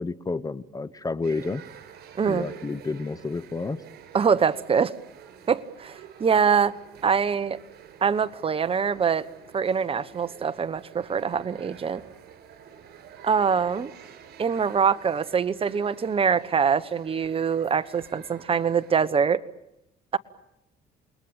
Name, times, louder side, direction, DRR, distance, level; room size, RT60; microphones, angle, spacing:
voice 1, 0.0-1.6 2.3-3.8, left 3 dB, 20° left, 18 dB, 0.9 m, -30 dB
sound 1, 1.2-19.1, right 8 dB, 70° right, 5.0 m, -48 dB
voice 2, 2.2-2.5 4.1-4.9 5.5-6.8 7.0-7.6 8.0-9.3 9.5-12.0 13.2-13.9 14.4-19.4, right 6 dB, 35° right, 14 dB, 1.1 m, -24 dB
28.5 x 21.5 x 8.9 m, 0.86 s
cardioid pair, 110°, 17 cm